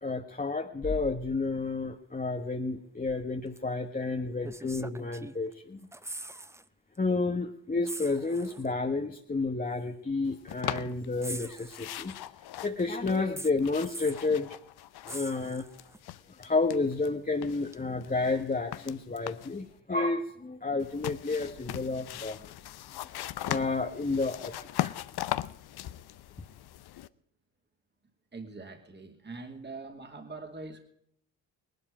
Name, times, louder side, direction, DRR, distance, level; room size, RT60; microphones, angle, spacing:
voice 1, 0.0-5.9 7.0-12.1 12.6-14.6 15.0-15.6 16.4-22.5 23.4-24.9, left 3 dB, 20° left, 3 dB, 1.3 m, -31 dB
sound 1, 3.6-3.7 4.4-5.5 5.8-6.7 7.0-7.1 7.8-8.7 9.7-9.8 11.2-12.3 13.4-14.3 15.1-16.0 17.7-17.8, right 2 dB, 5° right, 0.6 m, -43 dB
sound 2, 10.5-11.4 11.7-15.5 15.7-17.1 17.4-19.6 20.8-27.1, left 13 dB, 60° left, 0.8 m, -39 dB
voice 2, 28.3-30.8, right 3 dB, 25° right, 4 dB, 2.4 m, -43 dB
18.5 x 12.0 x 5.0 m, 0.70 s
supercardioid pair, 65°, 44 cm